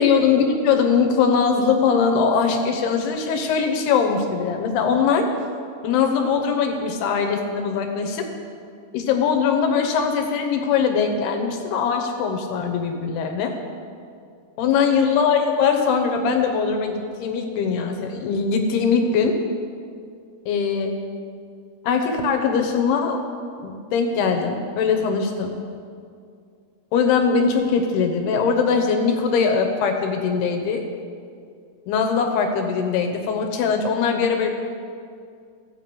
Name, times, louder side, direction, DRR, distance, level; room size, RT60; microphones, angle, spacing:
voice 1, 0.0-5.3 5.8-8.3 8.9-13.5 14.6-19.4 20.5-21.0 21.8-23.2 23.6-25.6 26.9-30.8 31.9-34.6, left 5 dB, 75° left, 4 dB, 2.8 m, -21 dB
15.0 x 8.7 x 5.3 m, 2.3 s
omnidirectional pair, 5.0 m